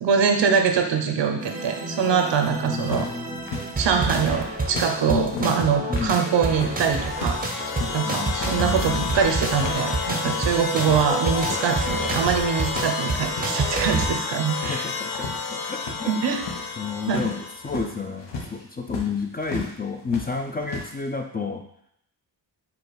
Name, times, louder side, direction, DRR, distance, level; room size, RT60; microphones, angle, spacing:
voice 1, 0.0-3.1 3.8-7.4 7.9-14.9 16.1-16.4 17.1-17.3, right 6 dB, 90° right, 4 dB, 0.7 m, -23 dB
sound 1, 1.4-14.1, right 2 dB, 20° right, 0.6 m, -29 dB
voice 2, 2.5-3.5 5.1-5.6 5.9-6.2 8.1-9.0 14.7-16.4 16.8-21.7, left 5 dB, 25° left, 4 dB, 0.3 m, -31 dB
sound 2, 2.8-4.9 5.2-9.8 10.1-11.0 11.3-12.3 12.6-13.5 13.8-14.3 14.5-19.7 20.0-20.9, left 3 dB, 80° left, 1.0 m, -35 dB
sound 3, 6.7-17.9, left 5 dB, 65° left, 0.6 m, -31 dB
4.9 x 2.2 x 4.7 m, 0.72 s
wide cardioid pair, 120°, 42 cm